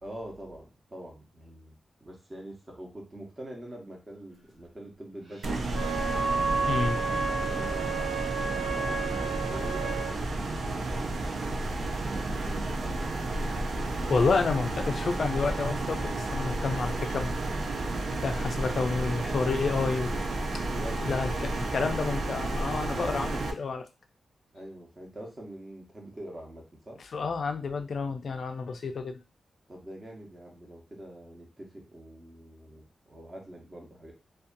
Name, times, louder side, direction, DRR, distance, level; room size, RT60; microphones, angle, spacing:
voice 1, 0.0-6.0 6.7-8.2 8.7-10.1 10.6-13.3 20.7-21.0 24.5-27.0 29.7-34.1, right 1 dB, 25° right, 0 dB, 0.8 m, -45 dB
sound 1, 5.4-23.5, right 2 dB, 60° right, 0.4 m, -32 dB
Wind instrument woodwind instrument, 5.7-10.1, right 4 dB, 80° right, 1.1 m, -31 dB
voice 2, 6.7-7.0 13.8-17.3 18.2-20.1 20.5-20.6 21.0-23.9 27.1-29.2, left 4 dB, 55° left, 7 dB, 0.3 m, -30 dB
2.5 x 2.2 x 2.5 m, 0.31 s
wide cardioid pair, 140°, 0 cm